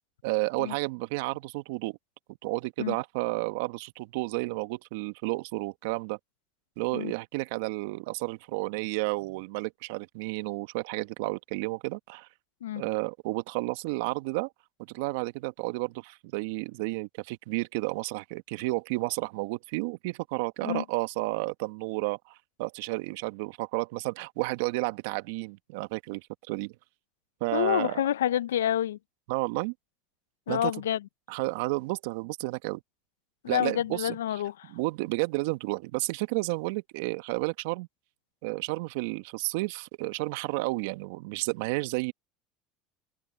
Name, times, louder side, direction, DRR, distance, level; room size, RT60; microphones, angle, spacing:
voice 1, 0.2-2.0 2.4-6.2 6.8-12.3 12.7-14.5 14.9-26.7 27.4-28.0 29.3-29.7 30.5-30.7 31.3-32.8 33.5-34.4 34.7-37.9 38.4-42.1, right 24 dB, 70° right, 1.5 m, -31 dB
voice 2, 27.5-29.0 30.5-31.0 33.4-34.7, left 11 dB, 85° left, 0.8 m, -28 dB
hypercardioid pair, 80°, 0 cm